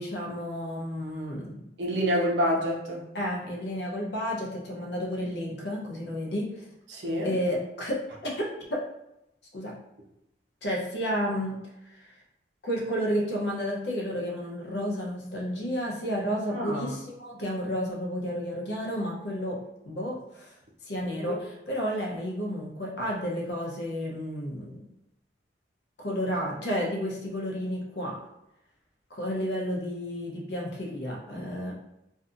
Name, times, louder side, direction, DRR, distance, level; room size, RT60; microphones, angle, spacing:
voice 1, 0.0-1.6 3.1-6.6 7.2-8.0 8.2-8.8 9.5-9.7 10.6-11.6 11.9-12.1 12.6-19.6 19.8-20.5 20.8-24.8 26.0-28.2 29.1-31.7, equal, 70° left, -2 dB, 0.7 m, -31 dB
voice 2, 1.8-3.0 6.9-7.3 16.5-17.0 21.2-21.4, equal, 70° right, -2 dB, 0.6 m, -27 dB
2.6 x 2.5 x 2.5 m, 0.86 s
head